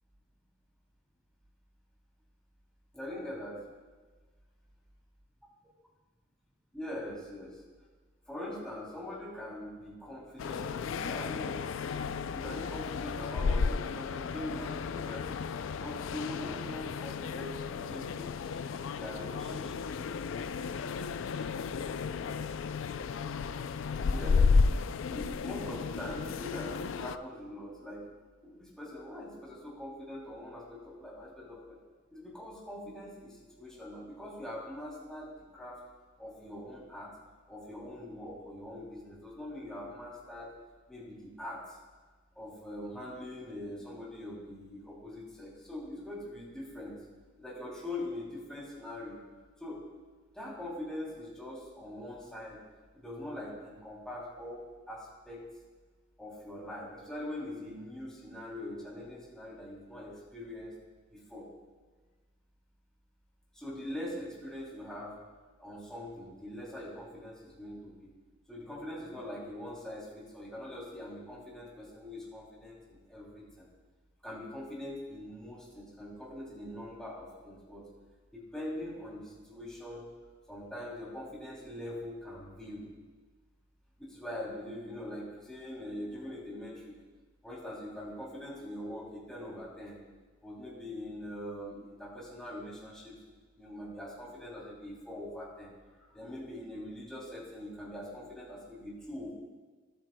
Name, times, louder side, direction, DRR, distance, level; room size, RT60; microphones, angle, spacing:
voice 1, 2.9-3.6 6.7-7.6 8.3-12.0 12.3-15.4 15.8-18.3 18.9-19.7 24.0-24.7 25.1-28.1 28.4-31.8 32.1-35.8 36.2-37.1 37.5-40.5 40.9-41.8 42.3-47.0 47.4-49.2 49.6-49.8 50.3-52.6 52.9-55.5 56.2-60.7 61.1-61.5 63.5-65.1 65.6-68.1 68.5-73.7 74.2-77.8 78.3-80.1 80.5-82.9 84.0-86.9 87.4-90.0 90.4-93.2 93.6-99.3, left 1 dB, 5° left, -6 dB, 2.9 m, -43 dB
sound 1, 10.4-27.2, left 5 dB, 75° left, 0.4 m, -33 dB
17.5 x 9.3 x 2.2 m, 1.4 s
head